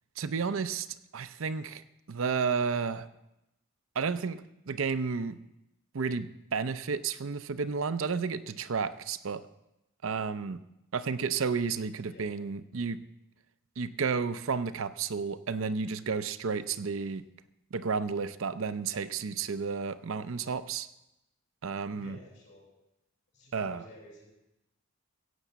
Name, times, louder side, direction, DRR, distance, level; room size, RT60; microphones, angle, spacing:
voice 1, 0.2-0.9 1.1-3.1 4.0-5.4 5.9-9.4 10.0-10.6 10.9-13.0 13.8-17.3 17.7-20.9 21.6-22.2 23.5-23.8, right 5 dB, 60° right, 13 dB, 0.5 m, -32 dB
voice 2, 21.9-22.6 23.3-24.3, left 1 dB, 50° left, -4 dB, 7.0 m, -51 dB
16.0 x 7.3 x 8.0 m, 0.91 s
head